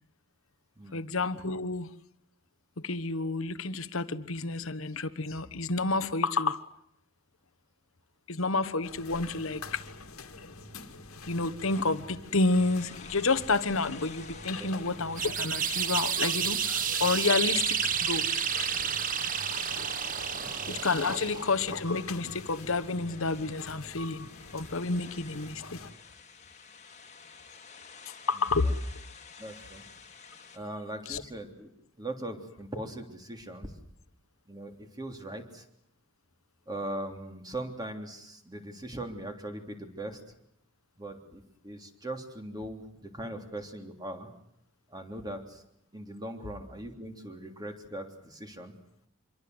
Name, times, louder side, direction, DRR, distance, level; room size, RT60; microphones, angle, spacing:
voice 1, 0.9-1.9 2.8-6.6 8.3-9.8 11.3-18.4 20.7-25.8 28.3-28.7 31.1-31.2, left 3 dB, 65° left, 13 dB, 1.3 m, -30 dB
sound 1, 8.8-25.9, left 3 dB, 90° left, 2.2 m, -46 dB
sound 2, 11.7-30.6, left 5 dB, 35° left, 2.1 m, -51 dB
sound 3, 15.2-21.5, right 8 dB, 40° right, 1.1 m, -30 dB
voice 2, 29.4-29.8 30.5-31.7 32.0-33.7 34.5-35.6 36.7-40.2 41.0-44.3 44.9-45.6 45.9-48.7, right 1 dB, 20° right, 4 dB, 3.3 m, -40 dB
26.0 x 23.0 x 8.0 m, 0.75 s
head